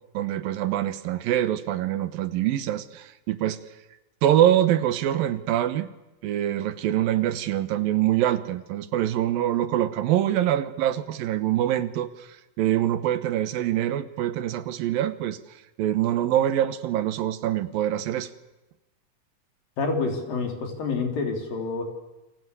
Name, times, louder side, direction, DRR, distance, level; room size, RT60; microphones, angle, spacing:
voice 1, 0.1-3.6 4.2-5.9 6.2-12.3 12.6-15.4 15.8-18.3, right 12 dB, 80° right, 12 dB, 2.9 m, -24 dB
voice 2, 19.8-21.8, left 4 dB, 75° left, 3 dB, 5.1 m, -28 dB
28.0 x 24.5 x 8.3 m, 1.0 s
omnidirectional pair, 4.0 m